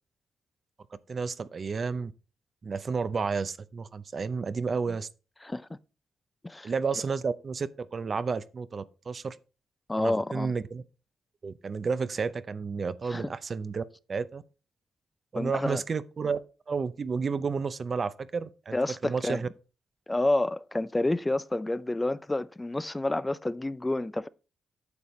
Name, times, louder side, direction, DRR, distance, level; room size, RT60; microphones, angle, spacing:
voice 1, 1.1-2.1 2.6-5.1 6.6-9.4 10.0-10.8 11.4-13.8 14.1-14.4 15.3-16.4 16.7-18.8 19.0-19.5, right 5 dB, 50° right, 0.6 m, -31 dB
voice 2, 5.4-5.8 6.4-6.7 9.9-10.5 13.1-13.3 15.3-15.8 18.7-19.4 20.1-24.3, left 2 dB, 20° left, 0.4 m, -29 dB
9.5 x 6.9 x 3.1 m
supercardioid pair, 55°, 0 cm